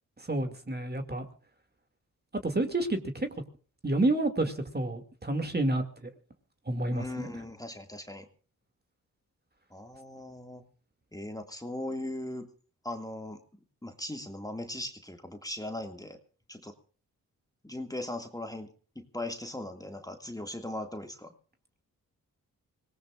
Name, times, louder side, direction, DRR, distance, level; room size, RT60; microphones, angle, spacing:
voice 1, 0.2-1.3 2.4-3.3 3.8-6.1 6.7-7.3, right 2 dB, 30° right, 6 dB, 2.4 m, -29 dB
voice 2, 6.9-8.3 9.7-10.6 11.1-12.5 12.8-13.4 13.8-16.2 16.5-16.7 17.6-18.7 19.0-21.3, left 1 dB, 10° left, 5 dB, 2.1 m, -39 dB
25.5 x 18.0 x 2.5 m, 0.39 s
cardioid pair, 55°, 35 cm